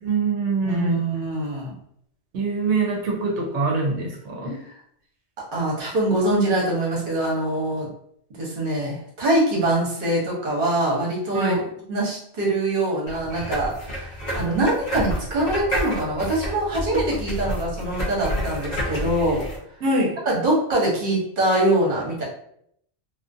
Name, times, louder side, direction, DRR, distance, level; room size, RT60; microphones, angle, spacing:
voice 1, 0.0-1.1 2.3-4.6 11.3-11.6 19.8-20.2, right 3 dB, 90° right, 0 dB, 0.9 m, -24 dB
voice 2, 0.6-1.7 5.5-7.9 8.4-11.6 11.9-19.4 20.3-22.2, right 1 dB, 55° right, -3 dB, 1.0 m, -23 dB
sound 1, 13.1-19.6, equal, 45° left, 0.7 m, -29 dB
2.4 x 2.3 x 2.5 m, 0.68 s
omnidirectional pair, 1.1 m